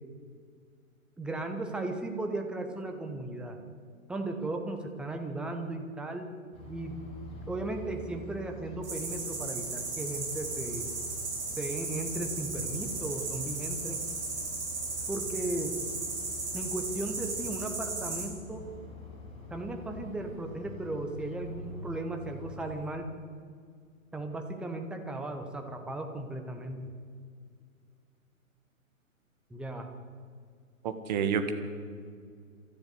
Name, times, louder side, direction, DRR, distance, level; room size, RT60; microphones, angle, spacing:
voice 1, 1.2-3.6 4.1-6.3 6.7-7.0 7.5-10.9 11.6-14.1 15.1-15.8 16.5-18.6 19.5-23.1 24.1-26.9 29.5-29.9, right 2 dB, ahead, 4 dB, 0.9 m, -36 dB
sound 1, 6.5-22.9, left 1 dB, 15° left, 4.6 m, -46 dB
sound 2, 8.8-18.3, right 3 dB, 50° right, 7.1 m, -36 dB
voice 2, 30.8-31.5, right 7 dB, 30° right, 8 dB, 1.7 m, -29 dB
23.5 x 14.0 x 8.2 m, 2.1 s
figure-of-eight pair, 125°, 42 cm